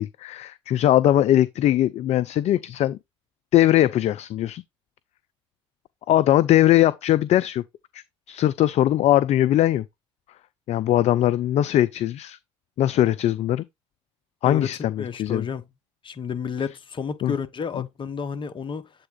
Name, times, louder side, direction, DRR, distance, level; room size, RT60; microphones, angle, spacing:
voice 1, 0.0-3.0 3.5-4.6 6.1-7.6 7.9-9.8 10.7-12.4 12.8-13.6 14.4-15.4 17.2-17.3, left 13 dB, 50° left, 0.4 m, -20 dB
voice 2, 15.0-15.7 16.0-18.9, left 6 dB, 35° left, 1.0 m, -31 dB
7.9 x 3.5 x 3.8 m
hypercardioid pair, 70°, 15 cm